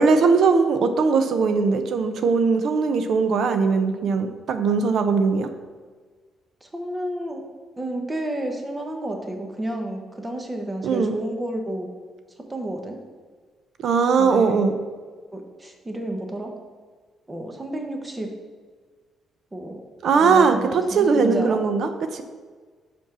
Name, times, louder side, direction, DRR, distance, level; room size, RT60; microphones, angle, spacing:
voice 1, 0.0-5.5 10.8-11.2 13.8-14.8 20.0-22.2, right 5 dB, 65° right, 8 dB, 0.6 m, -20 dB
voice 2, 6.6-7.4 7.8-11.9 12.5-13.0 14.2-14.7 15.3-16.5 17.3-18.3 19.5-19.8 20.1-21.6, right 1 dB, 20° right, 3 dB, 1.1 m, -31 dB
5.3 x 4.5 x 6.2 m, 1.5 s
cardioid pair, 90°, 0 cm